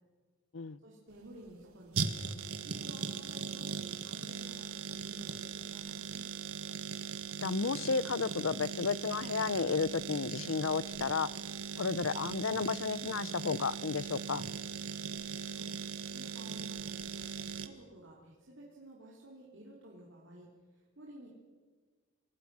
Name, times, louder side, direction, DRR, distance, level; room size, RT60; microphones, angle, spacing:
voice 1, 0.8-3.8 4.0-6.2 15.5-15.7 16.1-20.5 20.7-21.3, right 1 dB, 55° right, 3.3 m, -53 dB
sound 1, 1.1-17.7, right 6 dB, 80° right, 1.5 m, -39 dB
voice 2, 7.4-11.3 11.8-14.4, left 5 dB, 65° left, 0.6 m, -32 dB
28.0 x 19.0 x 6.2 m
head